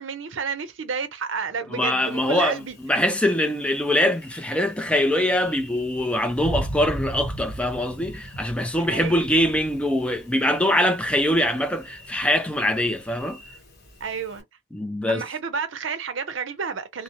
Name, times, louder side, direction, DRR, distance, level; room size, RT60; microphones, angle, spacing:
voice 1, 0.0-2.8 8.9-9.2 14.0-14.5 15.1-17.0, right 5 dB, 70° right, 0.6 m, -30 dB
voice 2, 1.7-13.4 14.7-15.2, left 1 dB, 5° left, 0.4 m, -23 dB
Thunder, 2.0-14.4, right 1 dB, 50° left, 0.8 m, -39 dB
2.8 x 2.0 x 2.5 m
head